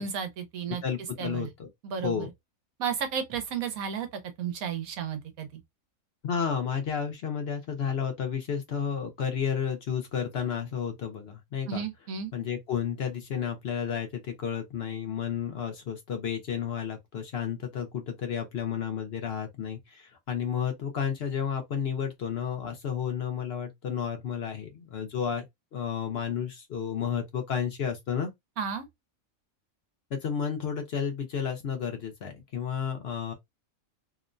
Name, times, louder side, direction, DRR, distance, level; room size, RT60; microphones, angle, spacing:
voice 1, 0.0-0.8 1.2-1.5 1.8-2.3 2.8-4.1 4.4-5.6 11.7-12.3 28.6-28.9, right 7 dB, 90° right, 1.2 m, -33 dB
voice 2, 0.7-1.7 2.0-2.3 6.2-11.8 12.3-25.4 25.7-28.3 30.1-33.3, left 7 dB, 60° left, 0.8 m, -32 dB
2.9 x 2.1 x 2.4 m
omnidirectional pair, 1.5 m